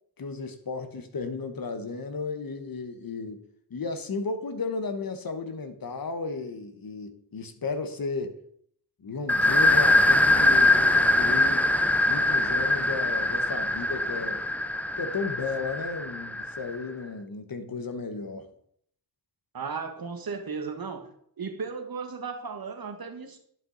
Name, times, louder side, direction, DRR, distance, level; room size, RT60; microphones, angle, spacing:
voice 1, 0.2-3.4 3.7-8.3 9.0-11.7 12.0-14.4 15.0-18.5, left 4 dB, 60° left, 1.2 m, -34 dB
sound 1, 9.3-16.8, left 2 dB, 5° left, 0.4 m, -23 dB
voice 2, 19.5-21.1 21.4-23.4, right 5 dB, 60° right, 1.4 m, -35 dB
10.5 x 5.8 x 4.0 m
cardioid pair, 65°, 40 cm